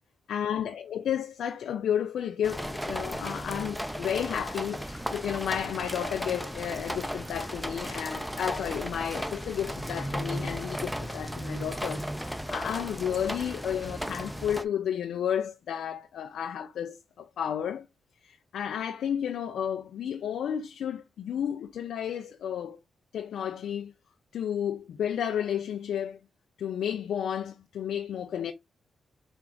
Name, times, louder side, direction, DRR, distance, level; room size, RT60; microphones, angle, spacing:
voice 1, 0.3-17.9 18.2-22.8 23.1-23.9 24.3-26.2 26.6-28.5, left 9 dB, 85° left, 0.3 m, -32 dB
sound 1, 2.4-14.6, equal, ahead, 0.5 m, -35 dB
4.3 x 2.4 x 3.7 m
cardioid pair, 65°, 0 cm